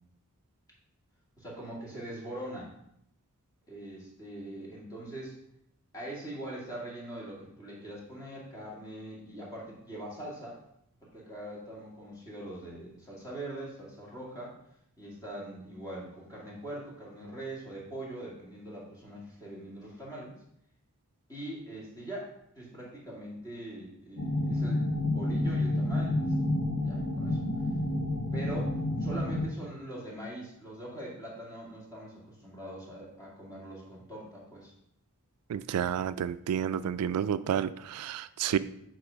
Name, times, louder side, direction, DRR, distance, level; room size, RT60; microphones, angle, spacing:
voice 1, 1.4-2.7 3.7-5.4 5.9-10.6 11.0-14.6 15.0-20.3 21.3-26.4 26.8-27.4 28.3-34.7, right 1 dB, 15° left, -5 dB, 2.1 m, -42 dB
sound 1, 24.2-29.5, left 1 dB, 65° left, 1.1 m, -29 dB
voice 2, 35.5-38.6, right 8 dB, 90° right, 14 dB, 0.3 m, -30 dB
7.9 x 3.1 x 5.1 m, 0.74 s
head